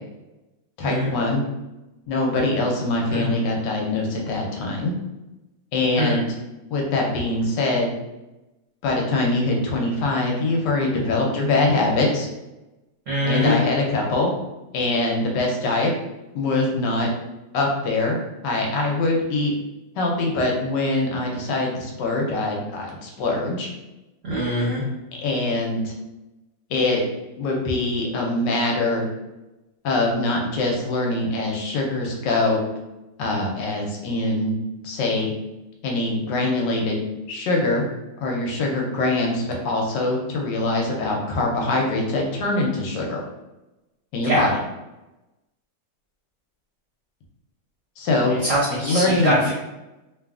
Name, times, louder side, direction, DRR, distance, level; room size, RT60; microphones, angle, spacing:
voice 1, 0.8-1.4 2.1-4.9 5.7-6.2 6.7-7.9 8.8-12.3 13.2-14.3 14.7-15.9 16.3-17.1 17.5-18.2 18.4-19.5 20.0-23.7 25.2-25.9 26.7-27.0 27.4-29.1 29.8-32.6 33.2-34.6 34.8-35.3 35.8-37.8 38.2-43.2 44.1-44.6 48.0-48.4 48.8-49.5, left 2 dB, 75° left, 0 dB, 1.2 m, -23 dB
voice 2, 13.1-13.6 24.2-24.8 44.2-44.5 48.4-49.5, equal, 60° right, -6 dB, 0.8 m, -22 dB
3.0 x 2.3 x 2.3 m, 1.0 s
omnidirectional pair, 2.0 m